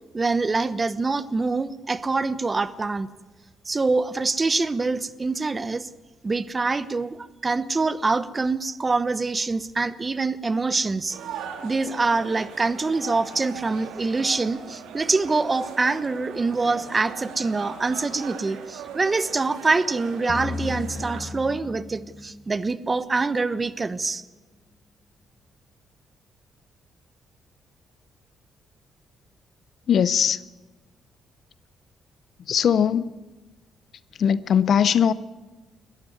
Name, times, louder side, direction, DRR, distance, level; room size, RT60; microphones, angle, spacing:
voice 1, 0.1-3.1 3.6-5.9 6.2-11.2 11.6-24.2, right 3 dB, 25° right, 15 dB, 1.0 m, -25 dB
sound 1, 11.1-21.2, right 7 dB, 90° right, 2.6 m, -39 dB
sound 2, 20.3-23.2, left 4 dB, 35° left, 1.6 m, -35 dB
voice 2, 29.9-30.4 32.4-33.2 34.2-35.1, left 8 dB, 60° left, 17 dB, 0.7 m, -20 dB
21.0 x 14.0 x 9.5 m, 1.2 s
cardioid pair, 90°, 0 cm